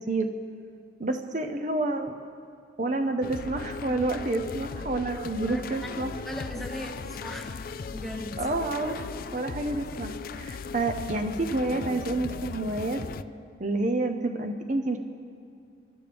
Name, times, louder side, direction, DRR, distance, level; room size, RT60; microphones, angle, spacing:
voice 1, 1.0-2.2 2.8-6.1 8.4-13.0 13.6-15.0, right 2 dB, 40° right, 5 dB, 0.7 m, -29 dB
sound 1, 3.2-13.2, left 5 dB, 50° left, 0.3 m, -37 dB
voice 2, 6.0-7.6 7.9-8.5, equal, ahead, 1 dB, 1.2 m, -38 dB
29.5 x 13.0 x 3.5 m, 2.4 s
head